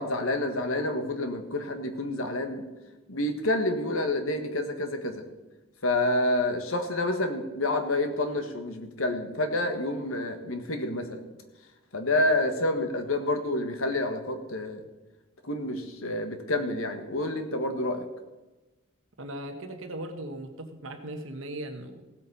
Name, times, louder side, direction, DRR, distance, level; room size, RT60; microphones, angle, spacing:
voice 1, 0.0-2.6 3.1-5.2 5.8-11.2 11.9-14.8 15.4-18.1, left 1 dB, 75° left, 7 dB, 1.6 m, -28 dB
voice 2, 19.2-22.0, right 1 dB, 65° right, 6 dB, 1.2 m, -38 dB
16.5 x 8.2 x 5.6 m, 1.1 s
head